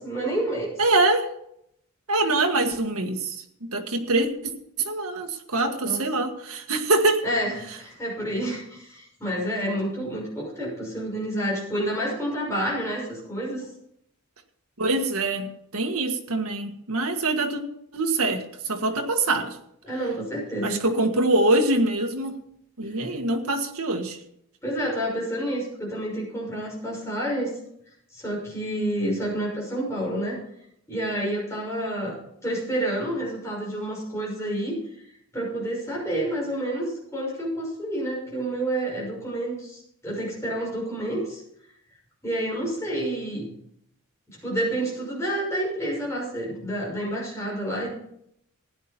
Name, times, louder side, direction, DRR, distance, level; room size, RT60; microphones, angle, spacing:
voice 1, 0.0-0.7 5.8-6.0 7.2-13.7 19.8-20.8 24.6-27.5 28.1-30.4 30.9-32.2 32.4-34.8 35.3-36.9 37.1-41.4 42.2-43.5 44.4-47.9, right 1 dB, 15° left, -3 dB, 6.0 m, -29 dB
voice 2, 0.8-1.3 2.1-3.4 3.7-4.3 4.8-7.2 14.8-15.5 15.7-17.6 17.9-19.5 20.6-22.4 22.8-24.2, right 2 dB, 80° right, 5 dB, 1.7 m, -24 dB
15.5 x 10.5 x 4.4 m, 0.72 s
head